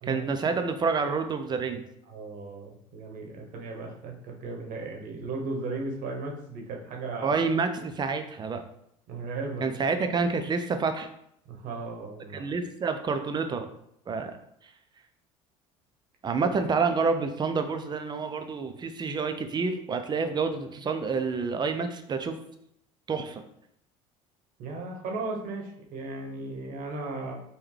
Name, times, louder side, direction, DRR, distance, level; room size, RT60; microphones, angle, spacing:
voice 1, 0.0-1.8 7.2-8.6 9.6-11.1 12.3-13.7 14.1-14.4 16.2-22.4 23.1-23.4, right 4 dB, 30° right, 7 dB, 0.4 m, -28 dB
voice 2, 2.1-7.3 9.1-9.7 11.5-12.5 16.4-16.5 24.6-27.4, right 3 dB, 60° right, 1 dB, 0.9 m, -36 dB
3.5 x 2.3 x 3.2 m, 0.72 s
hypercardioid pair, 75°, 15 cm